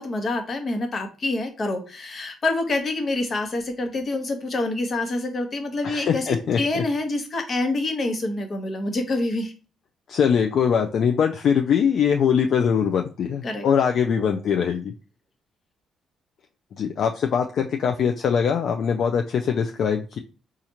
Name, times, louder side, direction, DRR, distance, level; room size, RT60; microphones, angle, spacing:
voice 1, 0.0-9.5 13.4-13.7, left 2 dB, 45° left, 5 dB, 0.9 m, -26 dB
voice 2, 5.8-6.8 10.1-14.9 16.7-20.2, left 7 dB, 65° left, 5 dB, 0.3 m, -22 dB
4.3 x 2.4 x 2.8 m, 0.36 s
cardioid pair, 90°, 0 cm